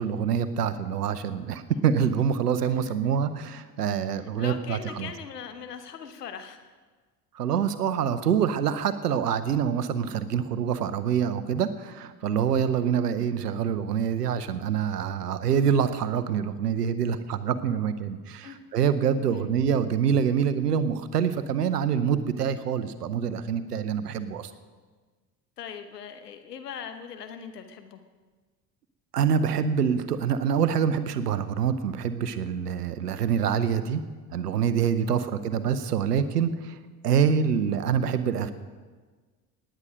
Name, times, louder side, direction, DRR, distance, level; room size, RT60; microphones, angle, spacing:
voice 1, 0.0-5.1 7.3-24.5 29.1-34.0 34.3-36.8 37.0-38.5, right 7 dB, 80° right, 13 dB, 0.8 m, -26 dB
voice 2, 2.7-3.1 4.1-6.7 12.7-13.0 18.4-18.6 19.1-19.5 25.6-28.0 35.0-35.2, left 7 dB, 80° left, 8 dB, 1.1 m, -41 dB
19.0 x 9.0 x 5.1 m, 1.4 s
figure-of-eight pair, 55°, 47 cm